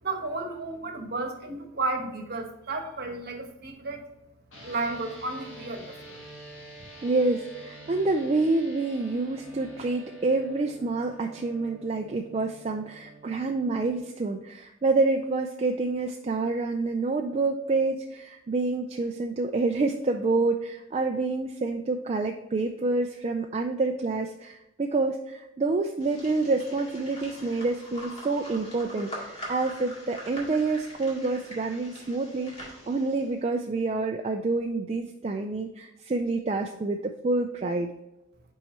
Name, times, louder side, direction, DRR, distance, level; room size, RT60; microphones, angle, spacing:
voice 1, 0.0-4.0 4.6-6.2, right 3 dB, 50° right, 4 dB, 1.0 m, -33 dB
sound 1, 4.5-14.0, right 1 dB, 85° left, 1.5 m, -47 dB
voice 2, 7.0-37.9, right 3 dB, 30° right, 3 dB, 0.3 m, -28 dB
sound 2, 26.0-33.3, equal, 30° left, 1.9 m, -43 dB
5.9 x 4.6 x 4.2 m, 0.89 s
head